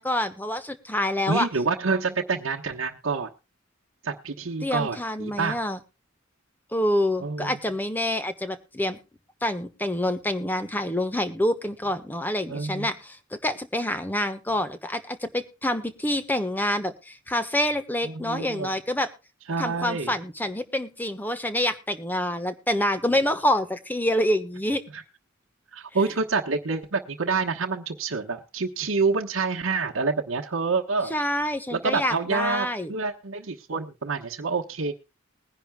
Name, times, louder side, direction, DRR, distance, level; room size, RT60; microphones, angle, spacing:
voice 1, 0.0-1.5 4.6-5.8 6.7-9.0 9.4-19.1 19.6-24.8 31.1-32.9, left 1 dB, 10° left, 10 dB, 1.2 m, -27 dB
voice 2, 1.3-3.3 4.0-5.6 7.2-7.6 12.5-12.9 18.0-18.7 19.5-20.1 23.1-23.2 24.9-25.0 25.7-31.1 31.7-34.9, right 4 dB, 85° right, 0 dB, 1.1 m, -27 dB
21.0 x 10.5 x 2.2 m, 0.30 s
head